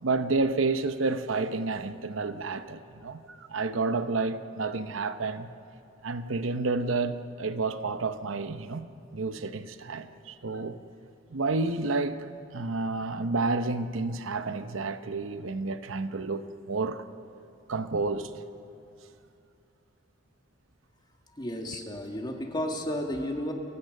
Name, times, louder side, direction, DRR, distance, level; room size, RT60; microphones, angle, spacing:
voice 1, 0.0-5.5 6.0-8.9 9.1-10.8 11.3-17.1 17.7-18.3, right 3 dB, 85° right, 0.8 m, -30 dB
voice 2, 21.4-23.5, left 1 dB, 20° left, 1.9 m, -32 dB
29.0 x 16.0 x 6.6 m
head